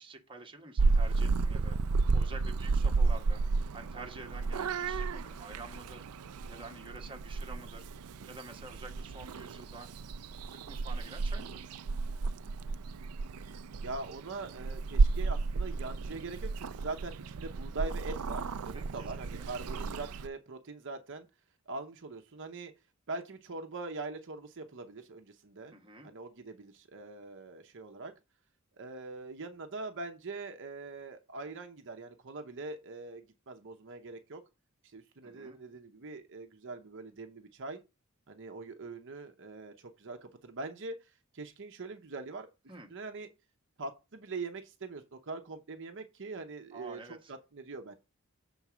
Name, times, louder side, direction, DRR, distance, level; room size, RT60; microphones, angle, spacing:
voice 1, 0.0-1.8 2.1-3.4 3.7-6.0 6.5-7.9 8.3-9.9 10.5-11.7 18.7-19.5 25.7-26.1 35.2-35.6 42.7-42.9 46.7-47.3, right 2 dB, 25° right, 1.4 m, -48 dB
Purr / Meow, 0.8-20.3, right 4 dB, 85° right, 0.4 m, -32 dB
voice 2, 13.4-21.3 21.7-22.7 23.1-25.7 26.0-28.1 28.8-34.4 34.8-37.8 38.3-42.5 42.9-43.3 43.8-47.9, right 3 dB, 60° right, 0.8 m, -42 dB
6.9 x 4.0 x 6.1 m
head